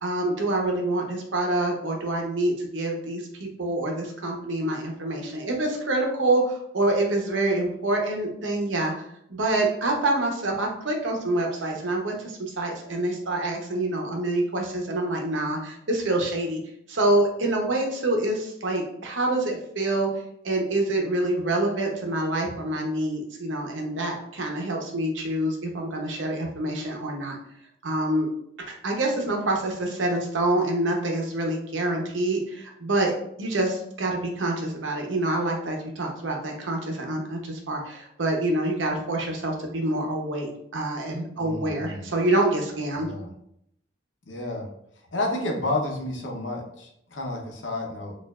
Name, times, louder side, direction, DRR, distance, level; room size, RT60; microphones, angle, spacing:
voice 1, 0.0-8.9 9.3-16.6 16.9-20.1 20.4-27.4 27.8-28.3 28.6-43.1, right 2 dB, 85° right, 1 dB, 0.8 m, -26 dB
voice 2, 41.4-42.1 42.9-43.3 44.2-44.7 45.1-48.1, left 2 dB, 85° left, 1 dB, 0.8 m, -31 dB
4.4 x 2.5 x 2.3 m, 0.72 s
head